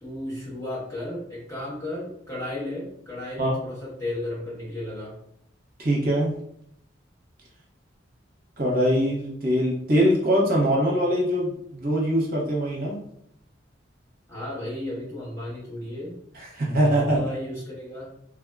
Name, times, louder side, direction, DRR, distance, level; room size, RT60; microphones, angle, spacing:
voice 1, 0.0-5.2 14.3-16.2 16.8-18.1, left 1 dB, 15° left, -7 dB, 1.1 m, -34 dB
voice 2, 5.8-6.3 8.6-13.0 16.3-17.3, equal, 55° right, -3 dB, 0.8 m, -23 dB
3.4 x 2.1 x 2.3 m, 0.70 s
head